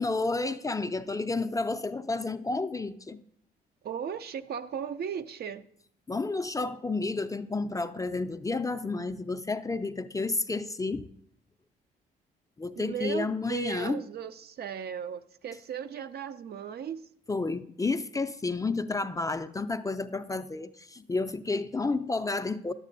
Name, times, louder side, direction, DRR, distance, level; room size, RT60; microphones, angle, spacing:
voice 1, 0.0-3.2 6.1-11.1 12.6-14.0 17.3-22.7, left 3 dB, 15° left, 0.4 m, -31 dB
voice 2, 3.8-5.6 12.8-17.0, right 8 dB, 55° right, 0.4 m, -36 dB
10.5 x 7.5 x 2.6 m
supercardioid pair, 60°, 20 cm